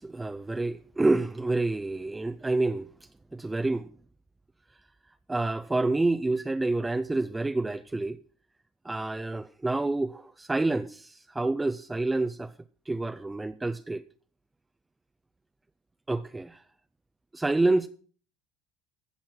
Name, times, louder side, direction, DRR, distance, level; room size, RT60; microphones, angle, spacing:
voice 1, 0.0-2.9 3.3-3.9 5.3-8.2 8.8-12.5 12.9-14.0 16.1-16.6 17.3-17.9, right 2 dB, 15° right, 0.6 m, -28 dB
15.5 x 7.1 x 5.9 m
hypercardioid pair, 70°, 0 cm